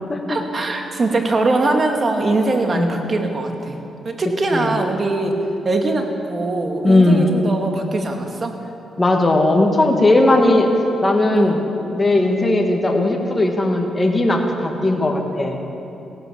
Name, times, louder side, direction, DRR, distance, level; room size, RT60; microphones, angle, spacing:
voice 1, 0.3-3.8 4.0-5.4 5.6-8.6 11.3-11.6, right 2 dB, 40° right, 3 dB, 2.0 m, -21 dB
voice 2, 2.7-3.0 4.5-4.7 6.8-7.3 9.0-10.7 11.0-11.6 11.9-15.6, left 2 dB, 20° left, 2 dB, 2.2 m, -17 dB
16.5 x 12.0 x 7.2 m, 2.9 s
cardioid pair, 80°, 0 cm